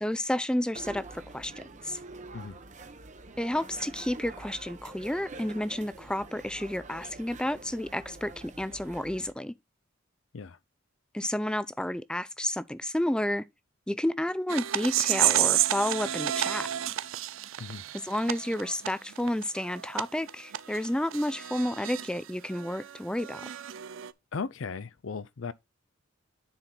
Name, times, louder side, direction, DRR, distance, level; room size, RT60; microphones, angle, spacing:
voice 1, 0.0-1.1 1.3-2.0 3.4-9.5 11.1-13.5 13.9-16.7 17.9-23.4, left 1 dB, 5° left, 0.4 m, -31 dB
sound 1, 0.7-9.3, right 3 dB, 40° right, 0.9 m, -46 dB
sound 2, 14.5-22.1 22.5-24.1, right 12 dB, 80° right, 0.5 m, -30 dB
voice 2, 24.3-25.5, left 5 dB, 75° left, 0.6 m, -36 dB
9.9 x 4.4 x 3.8 m
head